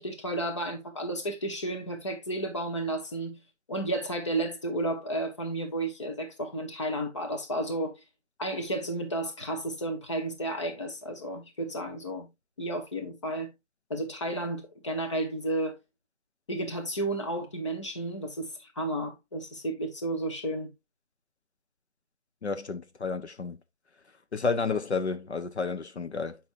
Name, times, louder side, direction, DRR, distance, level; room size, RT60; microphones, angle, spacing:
voice 1, 0.0-3.4 3.7-8.0 8.4-12.3 12.6-13.5 13.9-15.7 16.5-20.7, right 1 dB, 25° left, 1.0 m, -32 dB
voice 2, 22.4-23.6 24.3-26.4, left 4 dB, 65° left, 0.9 m, -31 dB
8.5 x 6.0 x 2.5 m
figure-of-eight pair, 170°, 37 cm